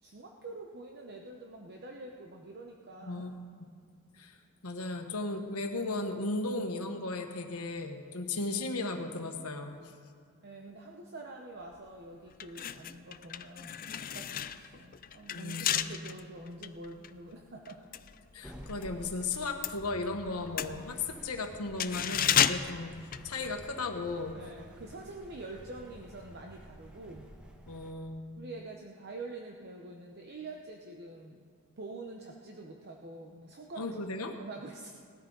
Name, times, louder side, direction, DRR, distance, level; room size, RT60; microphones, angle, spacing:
voice 1, 0.0-3.3 10.4-17.8 24.3-27.3 28.4-31.5 31.8-34.0 34.3-34.9, right 2 dB, 50° right, 1 dB, 0.9 m, -46 dB
voice 2, 3.0-3.3 3.6-3.7 4.1-4.4 4.6-9.9 15.3-15.9 18.3-23.0 23.2-24.4 27.6-28.3 33.8-34.4, left 3 dB, 90° left, 4 dB, 1.4 m, -36 dB
sound 1, 11.7-11.9 12.3-18.9 19.2-23.9 24.1-24.3, left 10 dB, 40° left, 0.4 m, -33 dB
sound 2, 18.4-27.9, equal, 5° right, 1.3 m, -51 dB
19.0 x 13.5 x 4.0 m, 2.1 s
head